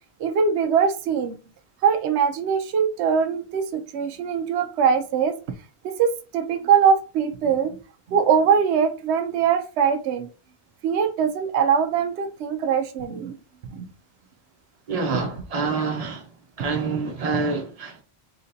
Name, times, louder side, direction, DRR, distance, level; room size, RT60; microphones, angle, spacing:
voice 1, 0.2-1.3 1.8-5.4 5.8-7.8 8.1-10.3 10.8-13.3 13.7-13.9, right 7 dB, 80° right, 0.9 m, -22 dB
voice 2, 14.9-16.3 16.6-18.0, right 4 dB, 35° right, 1.0 m, -26 dB
4.2 x 3.8 x 2.7 m
omnidirectional pair, 1.1 m